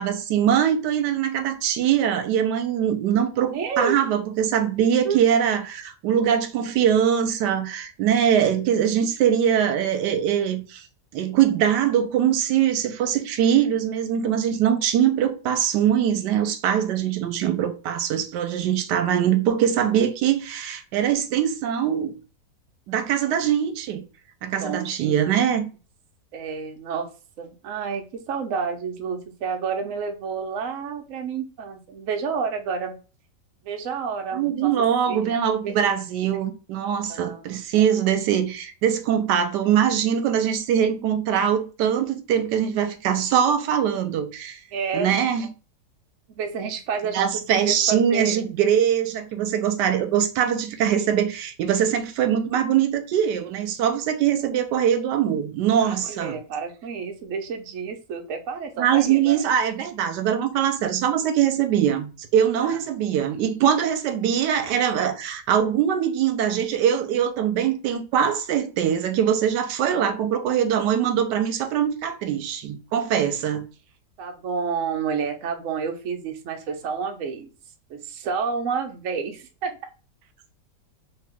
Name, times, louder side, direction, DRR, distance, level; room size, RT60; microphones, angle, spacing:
voice 1, 0.0-10.9 11.1-22.1 22.9-24.0 24.4-25.6 34.3-44.6 44.9-45.5 47.1-56.4 58.8-73.7, right 9 dB, 85° right, 1.2 m, -22 dB
voice 2, 3.5-4.0 5.0-5.2 24.6-25.4 26.3-27.1 27.4-33.0 33.6-34.8 35.1-35.3 35.6-35.7 37.1-37.4 44.7-45.1 46.4-48.4 55.8-59.4 62.6-62.8 74.2-77.5 77.9-79.8, right 6 dB, 65° right, 0.9 m, -30 dB
3.0 x 2.8 x 3.4 m
omnidirectional pair, 1.8 m